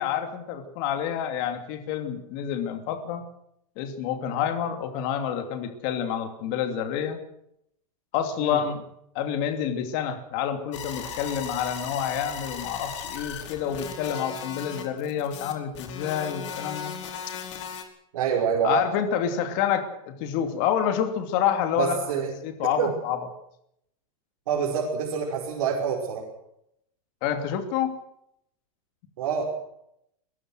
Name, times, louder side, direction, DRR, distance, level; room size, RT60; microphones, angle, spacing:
voice 1, 0.0-3.2 3.8-7.2 8.1-8.8 9.1-16.9 18.6-22.0 22.4-23.2 27.2-27.9, left 9 dB, 35° left, 7 dB, 2.9 m, -28 dB
sound 1, 10.7-17.8, left 7 dB, 55° left, 4.8 m, -37 dB
voice 2, 18.1-18.9 21.8-22.3 22.8-22.9 24.5-26.3 29.2-29.4, right 7 dB, 60° right, -2 dB, 5.5 m, -26 dB
23.0 x 20.5 x 6.4 m, 0.75 s
supercardioid pair, 175°, 18 cm